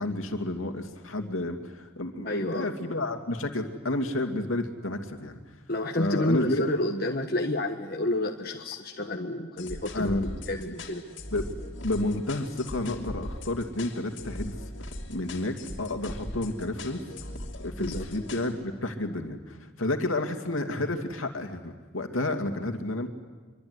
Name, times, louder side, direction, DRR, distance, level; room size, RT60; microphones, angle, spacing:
voice 1, 0.0-5.4 5.9-6.7 9.9-10.4 10.6-10.7 11.3-11.5 11.8-14.6 15.1-17.0 17.6-23.1, left 2 dB, 80° left, 5 dB, 2.5 m, -31 dB
voice 2, 2.2-2.7 5.7-11.0 17.8-18.1, left 1 dB, 45° left, 2 dB, 1.5 m, -30 dB
sound 1, 9.6-18.5, left 1 dB, 60° left, 3.0 m, -40 dB
25.0 x 24.0 x 9.7 m, 1.3 s
head